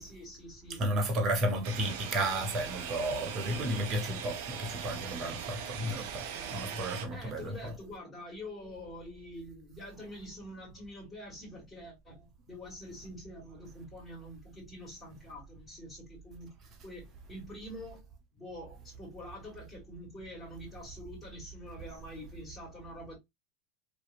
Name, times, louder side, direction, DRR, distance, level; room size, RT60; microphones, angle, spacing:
voice 1, 0.0-1.0 6.2-16.5 16.8-18.0 18.3-23.2, left 1 dB, 20° left, 1.5 m, -46 dB
voice 2, 0.8-6.3 6.5-7.5, right 1 dB, 40° right, 0.8 m, -32 dB
sound 1, 1.6-7.1, right 7 dB, 65° right, 0.5 m, -40 dB
2.8 x 2.1 x 2.4 m
hypercardioid pair, 95°, 0 cm